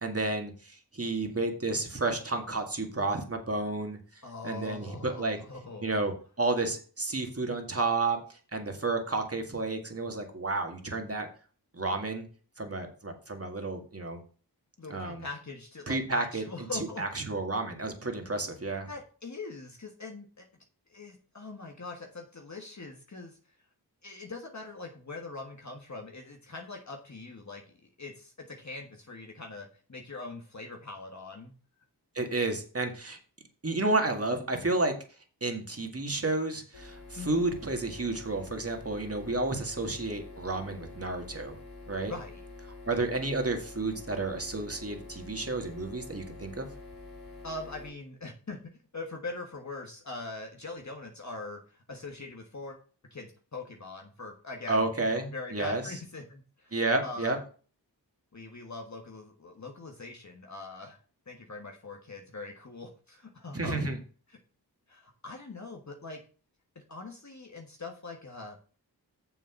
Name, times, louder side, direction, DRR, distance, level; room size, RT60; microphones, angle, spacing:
voice 1, 0.0-4.0 4.4-5.4 5.8-6.1 6.4-11.3 11.7-12.3 12.6-14.2 14.9-15.2 15.9-16.4 17.0-18.9 32.2-33.2 33.6-35.0 35.4-41.6 41.9-42.1 42.9-46.7 54.7-55.9 56.7-57.4 63.5-64.0, right 2 dB, 35° right, 4 dB, 2.0 m, -31 dB
voice 2, 4.2-6.1 13.7-13.8 14.8-17.0 18.9-20.4 20.9-23.4 24.0-31.5 37.2-37.4 42.0-42.4 47.4-48.6 48.9-52.8 53.1-54.8 55.3-57.3 58.3-61.0 61.3-63.9 64.9-66.2 66.7-68.6, left 3 dB, 45° left, 2 dB, 1.5 m, -42 dB
sound 1, 36.7-47.9, left 3 dB, 85° left, 2.9 m, -47 dB
7.0 x 6.1 x 5.9 m, 0.39 s
wide cardioid pair, 60°, 40 cm